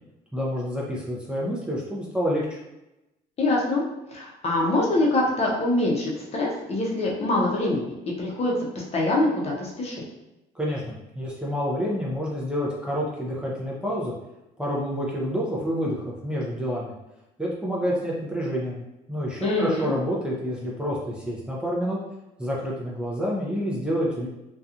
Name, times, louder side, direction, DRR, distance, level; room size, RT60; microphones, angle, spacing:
voice 1, 0.3-2.6 10.5-14.1 14.6-16.9 17.4-18.8 19.1-22.0 22.4-24.3, equal, 5° right, -5 dB, 0.5 m, -28 dB
voice 2, 3.4-3.8 4.1-10.0 19.4-19.9, left 2 dB, 40° left, -2 dB, 0.7 m, -24 dB
2.8 x 2.3 x 2.5 m, 0.94 s
cardioid pair, 110°, 17 cm